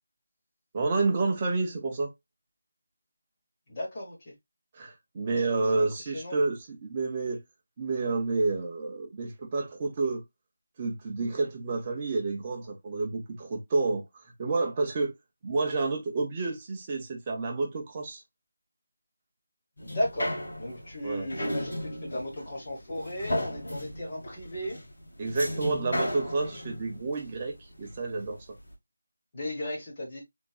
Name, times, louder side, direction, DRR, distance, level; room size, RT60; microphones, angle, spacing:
voice 1, 0.7-2.1 4.7-7.4 7.8-10.2 10.8-14.0 14.4-15.1 15.4-18.2 21.0-21.3 25.2-28.4, right 3 dB, 15° right, 0.7 m, -29 dB
voice 2, 3.7-4.3 5.2-5.9 6.1-6.4 19.8-24.8 29.3-30.2, left 1 dB, 20° left, 1.4 m, -36 dB
sound 1, 19.8-28.3 28.7-28.8, left 1 dB, 45° left, 2.3 m, -35 dB
5.0 x 3.6 x 2.4 m
figure-of-eight pair, 180°, 0 cm